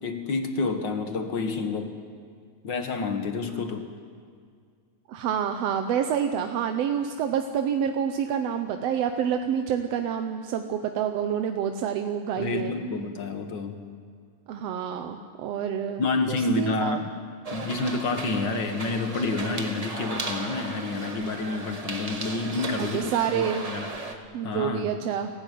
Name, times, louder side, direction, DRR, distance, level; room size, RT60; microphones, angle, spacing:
voice 1, 0.0-2.0 2.6-3.9 12.4-13.8 16.0-17.1 17.5-24.2 24.4-24.9, left 3 dB, 50° left, 6 dB, 1.6 m, -29 dB
voice 2, 5.1-12.7 14.5-16.0 16.3-17.0 22.8-23.6 24.3-25.3, right 8 dB, 70° right, 6 dB, 1.8 m, -28 dB
sound 1, 17.4-24.1, right 2 dB, 30° right, 0.6 m, -36 dB
29.5 x 13.0 x 9.3 m, 2.1 s
omnidirectional pair, 3.5 m